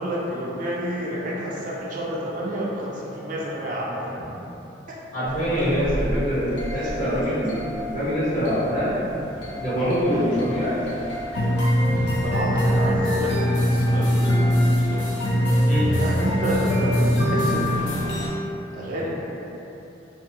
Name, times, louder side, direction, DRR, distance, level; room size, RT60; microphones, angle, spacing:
voice 1, 0.0-4.2 4.9-5.0 6.7-7.0 10.1-10.4 11.9-15.1 15.5-15.6 16.0-18.1 18.7-19.1, right 1 dB, 45° right, -4 dB, 0.3 m, -29 dB
voice 2, 5.1-7.6 7.9-9.0 9.6-10.8 15.7-15.9, equal, 45° left, -11 dB, 0.9 m, -24 dB
sound 1, 5.3-18.3, equal, 75° left, 0.5 m, -24 dB
2.5 x 2.3 x 2.8 m, 3.0 s
head